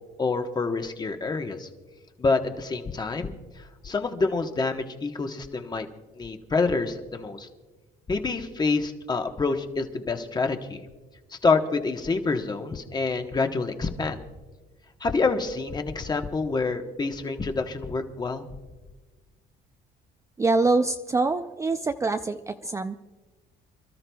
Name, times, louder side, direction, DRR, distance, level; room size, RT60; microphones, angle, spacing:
voice 1, 0.2-1.7 2.2-5.9 6.1-7.5 8.1-10.9 11.3-14.2 15.0-18.5, left 4 dB, 25° left, 5 dB, 1.1 m, -27 dB
voice 2, 20.4-23.0, right 3 dB, 20° right, 7 dB, 0.4 m, -25 dB
29.0 x 13.0 x 2.3 m, 1.3 s
cardioid pair, 110°, 17 cm